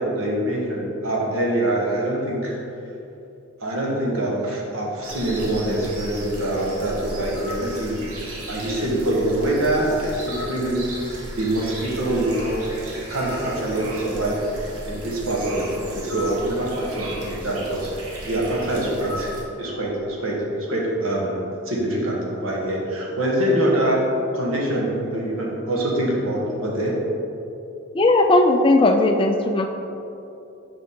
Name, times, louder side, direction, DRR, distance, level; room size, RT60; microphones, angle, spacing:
voice 1, 0.0-2.6 3.6-8.2 8.5-10.8 11.4-12.7 13.1-17.9 18.2-19.3 19.6-21.4 21.6-24.0 24.3-26.9, right 1 dB, 70° right, -3 dB, 1.3 m, -24 dB
sound 1, 5.0-19.4, right 1 dB, 85° right, 1.2 m, -36 dB
voice 2, 27.9-29.7, left 2 dB, 25° left, 4 dB, 0.3 m, -17 dB
6.7 x 5.1 x 3.8 m, 2.8 s
head